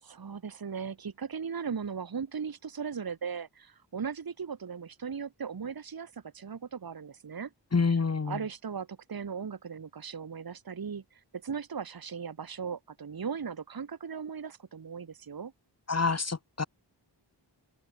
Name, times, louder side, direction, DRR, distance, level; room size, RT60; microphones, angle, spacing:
voice 1, 0.0-7.5 8.2-15.5, right 6 dB, 50° right, 1.0 m, -38 dB
voice 2, 7.7-8.4 15.9-16.6, left 4 dB, 35° left, 0.8 m, -27 dB
open air
wide cardioid pair, 60°, 45 cm